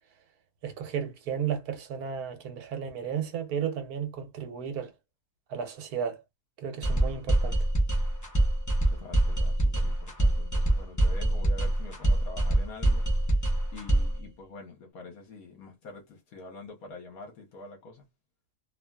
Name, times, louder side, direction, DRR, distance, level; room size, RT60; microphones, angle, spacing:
voice 1, 0.6-4.9 5.5-6.2 6.6-7.6, right 7 dB, 75° right, 1.2 m, -33 dB
sound 1, 6.8-14.2, right 1 dB, 20° left, 0.4 m, -25 dB
voice 2, 8.9-13.1 13.7-18.0, left 3 dB, 70° left, 1.3 m, -46 dB
2.8 x 2.5 x 2.2 m
omnidirectional pair, 1.6 m